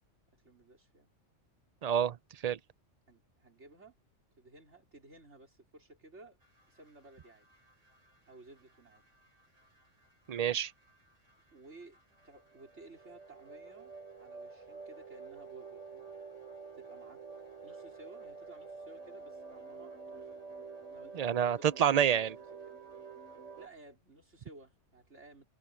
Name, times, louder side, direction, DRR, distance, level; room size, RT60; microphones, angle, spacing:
voice 1, 0.3-1.1 3.1-3.9 4.4-6.4 6.7-7.5 8.3-9.0 11.5-16.1 16.6-17.2 17.6-20.4 20.9-22.7 23.6-25.5, right 2 dB, 70° right, 5.0 m, -56 dB
voice 2, 1.8-2.6 10.3-10.7 21.1-22.3, right 9 dB, 50° right, 0.5 m, -28 dB
sound 1, 6.4-23.7, right 4 dB, 90° right, 5.1 m, -49 dB
omnidirectional pair, 1.2 m